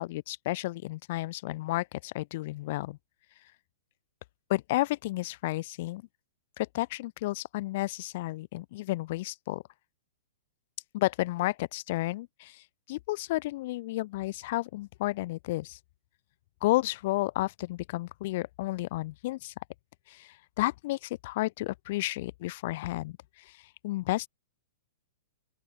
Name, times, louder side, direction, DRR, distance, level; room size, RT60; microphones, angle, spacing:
voice 1, 0.0-3.0 4.5-6.0 6.6-9.6 10.9-12.6 12.9-15.8 16.6-19.5 20.1-23.2 23.8-24.3, left 18 dB, 55° left, 5.1 m, -32 dB
open air
hypercardioid pair, 130°, 0 cm